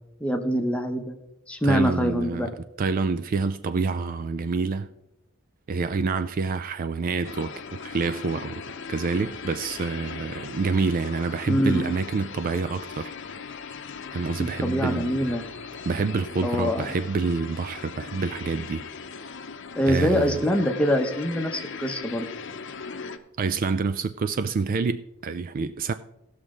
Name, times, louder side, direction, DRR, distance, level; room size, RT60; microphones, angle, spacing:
voice 1, 0.2-1.1 1.5-2.5 11.4-12.0 14.4-15.5 16.4-16.9 19.7-22.3, equal, 5° left, 0.9 m, -24 dB
voice 2, 1.6-2.5 2.8-4.9 5.7-7.5 7.8-8.6 8.9-13.1 14.1-15.4 15.9-18.9 19.9-20.4 23.4-25.9, right 4 dB, 45° right, 0.3 m, -27 dB
sound 1, 7.2-23.2, left 5 dB, 65° left, 0.7 m, -39 dB
17.0 x 6.4 x 3.7 m
head